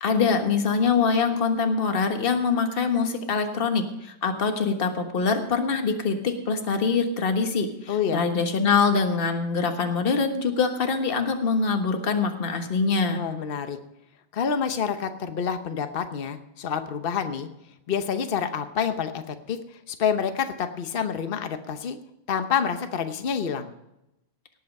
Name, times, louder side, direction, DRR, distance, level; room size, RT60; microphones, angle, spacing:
voice 1, 0.0-13.2, left 5 dB, 30° left, 5 dB, 1.4 m, -24 dB
voice 2, 7.9-8.2 13.1-13.8 14.3-17.5 17.9-19.6 19.9-22.0 22.3-23.7, left 7 dB, 85° left, 8 dB, 0.5 m, -28 dB
18.0 x 8.4 x 5.4 m, 0.87 s
omnidirectional pair, 2.3 m